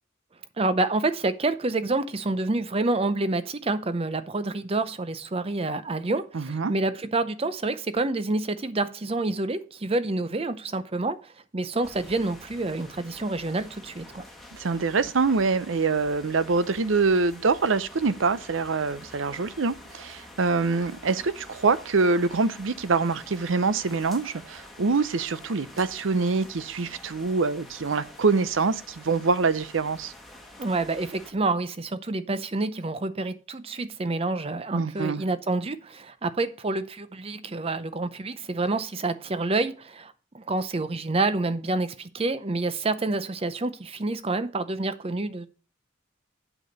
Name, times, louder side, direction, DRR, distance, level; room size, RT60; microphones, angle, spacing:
voice 1, 0.6-14.3 30.6-45.5, right 2 dB, 30° right, 0.6 m, -28 dB
voice 2, 6.3-6.7 14.5-30.1 34.7-35.2, right 4 dB, 80° right, 0.6 m, -25 dB
sound 1, 11.8-31.3, left 1 dB, ahead, 1.4 m, -47 dB
8.0 x 6.0 x 5.1 m
head